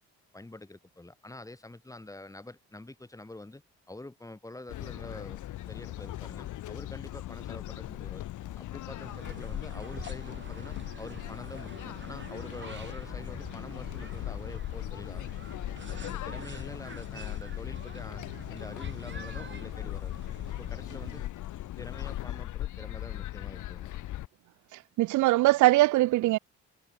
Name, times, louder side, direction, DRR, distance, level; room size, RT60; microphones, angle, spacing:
voice 1, 0.3-3.6 3.9-5.4 5.7-8.3 8.5-15.3 15.9-20.1 20.6-21.2 21.8-23.9, left 2 dB, 10° left, 1.6 m, -46 dB
sound 1, 4.7-24.3, left 14 dB, 80° left, 1.5 m, -39 dB
sound 2, 9.0-21.2, right 6 dB, 40° right, 4.2 m, -47 dB
voice 2, 24.7-26.4, right 18 dB, 75° right, 0.5 m, -22 dB
cardioid pair, 90°, 30 cm